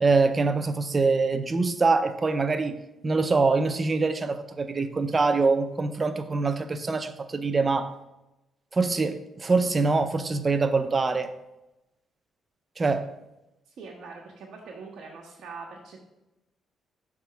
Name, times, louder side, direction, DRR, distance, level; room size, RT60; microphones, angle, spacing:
voice 1, 0.0-2.8 3.0-7.9 8.7-11.3 12.8-13.1, right 3 dB, 30° right, 10 dB, 0.6 m, -24 dB
voice 2, 13.7-16.0, right 4 dB, 65° right, -2 dB, 1.1 m, -43 dB
5.8 x 3.6 x 5.7 m, 0.95 s
cardioid pair, 90°, 0 cm